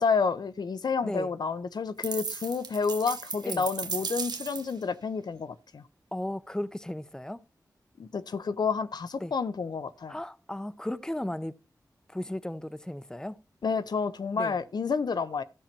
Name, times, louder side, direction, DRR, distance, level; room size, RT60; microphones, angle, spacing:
voice 1, 0.0-5.8 8.0-10.2 13.6-15.4, left 5 dB, 80° left, 0.7 m, -30 dB
sound 1, 2.0-4.8, right 5 dB, 75° right, 0.9 m, -36 dB
voice 2, 6.1-7.4 9.2-9.3 10.1-11.6 12.1-13.4 14.4-14.5, left 1 dB, 10° left, 0.7 m, -35 dB
13.5 x 5.7 x 4.4 m
cardioid pair, 45°, 7 cm